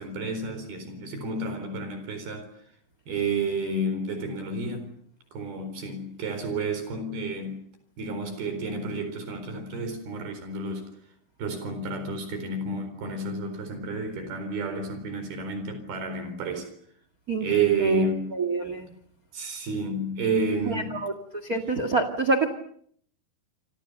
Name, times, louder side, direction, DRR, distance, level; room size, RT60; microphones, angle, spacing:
voice 1, 0.0-2.5 3.1-4.9 5.3-7.6 8.0-10.9 11.4-16.7 17.4-18.3 19.3-21.1, right 3 dB, 75° right, 6.1 m, -30 dB
voice 2, 18.3-18.9 20.7-21.1 21.4-22.5, right 3 dB, 30° right, 1.8 m, -26 dB
29.0 x 27.0 x 6.7 m
omnidirectional pair, 4.4 m